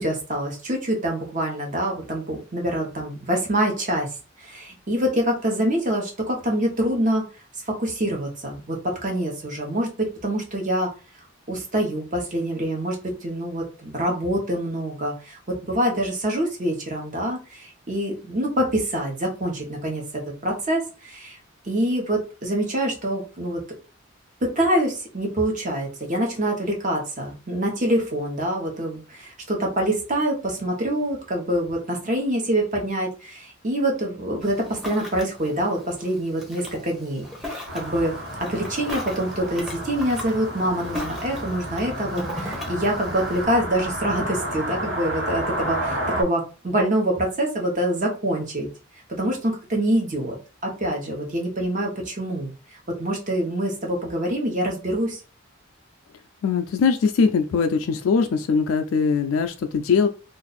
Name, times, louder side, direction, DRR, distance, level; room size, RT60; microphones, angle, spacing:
voice 1, 0.0-4.1 4.4-7.2 7.7-10.9 11.5-21.4 21.6-23.6 24.4-38.1 38.4-48.7 49.1-50.3 50.6-52.5 52.9-55.2, right 1 dB, 40° right, 0 dB, 1.0 m, -25 dB
Ocean, 34.4-43.4, left 1 dB, ahead, 0.8 m, -38 dB
sound 1, 37.7-46.2, right 1 dB, 75° right, 1.5 m, -31 dB
voice 2, 56.4-60.1, left 5 dB, 85° left, 6 dB, 0.3 m, -21 dB
2.5 x 2.5 x 4.0 m, 0.34 s
head